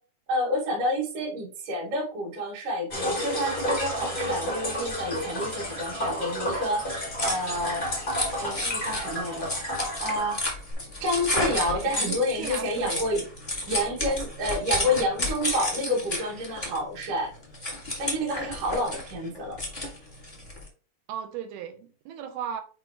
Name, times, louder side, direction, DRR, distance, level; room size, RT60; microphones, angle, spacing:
voice 1, 0.3-7.8 8.4-9.5 10.0-10.4 11.0-13.2 13.7-17.3 18.0-19.6, equal, 55° right, 3.2 m, -29 dB
sound 1, 2.9-10.7, equal, 75° left, 0.4 m, -31 dB
sound 2, 6.8-20.7, left 2 dB, 25° left, 1.0 m, -32 dB
voice 2, 11.8-13.1 21.1-22.6, right 9 dB, 80° right, 2.5 m, -36 dB
7.7 x 4.6 x 3.0 m
omnidirectional pair, 4.8 m